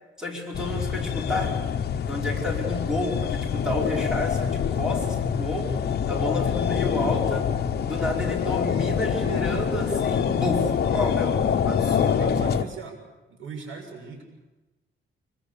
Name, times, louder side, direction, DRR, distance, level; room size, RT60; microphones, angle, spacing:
voice 1, 0.2-1.6 2.1-5.8 6.1-7.5 7.8-12.4, left 1 dB, 5° right, -2 dB, 5.0 m, -30 dB
sound 1, 0.5-12.6, left 7 dB, 55° left, 1.0 m, -25 dB
voice 2, 12.2-13.0 13.3-14.2, right 5 dB, 80° right, 2 dB, 6.5 m, -39 dB
25.0 x 22.5 x 7.0 m, 1.1 s
wide cardioid pair, 160°, 20 cm